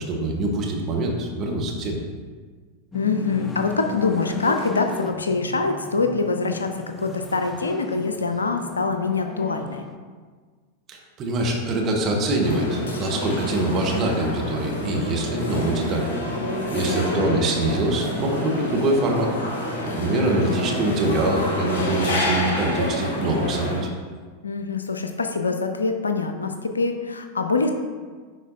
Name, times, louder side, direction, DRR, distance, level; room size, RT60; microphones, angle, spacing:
voice 1, 0.1-2.0 10.9-16.1 16.7-19.3 20.0-23.8, right 2 dB, 30° right, 0 dB, 1.2 m, -24 dB
voice 2, 2.9-9.8 16.9-17.4 24.4-27.7, left 4 dB, 75° left, 6 dB, 0.5 m, -25 dB
sound 1, 2.9-10.0, left 3 dB, 15° left, 0.4 m, -36 dB
sound 2, 12.4-23.8, left 1 dB, 60° left, 1.2 m, -28 dB
9.9 x 4.1 x 2.6 m, 1.5 s
figure-of-eight pair, 90°, 0 cm